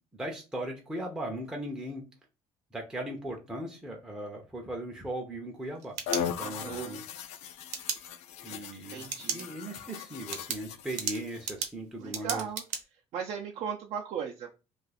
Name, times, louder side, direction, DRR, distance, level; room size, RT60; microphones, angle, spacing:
voice 1, 0.1-2.0 2.7-6.0 6.4-7.0 8.4-12.5, right 1 dB, 5° right, 0 dB, 0.5 m, -38 dB
sound 1, 5.6-6.8 7.7-8.0 9.0-9.4 9.8-9.9 10.3-12.8, right 7 dB, 80° right, 0.8 m, -35 dB
sound 2, 6.1-11.5, left 7 dB, 65° left, 0.4 m, -38 dB
voice 2, 6.4-7.0 8.9-9.5 12.0-12.6 13.1-14.5, right 7 dB, 55° right, 0 dB, 0.5 m, -37 dB
2.5 x 2.4 x 4.0 m, 0.30 s
cardioid pair, 140°, 12 cm